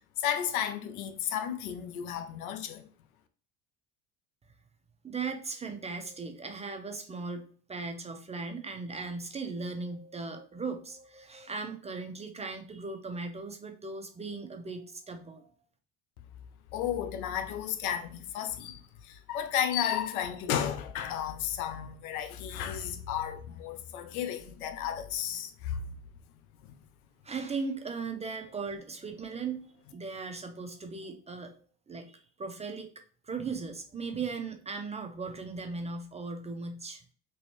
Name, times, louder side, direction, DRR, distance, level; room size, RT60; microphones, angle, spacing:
voice 1, 0.2-2.9 16.7-25.8 26.6-26.8, left 9 dB, 85° left, 0.6 m, -33 dB
voice 2, 5.0-15.5 27.2-31.5 31.9-32.9 33.2-37.1, right 4 dB, 15° right, 0.4 m, -38 dB
3.1 x 2.6 x 3.0 m
hypercardioid pair, 80°, 42 cm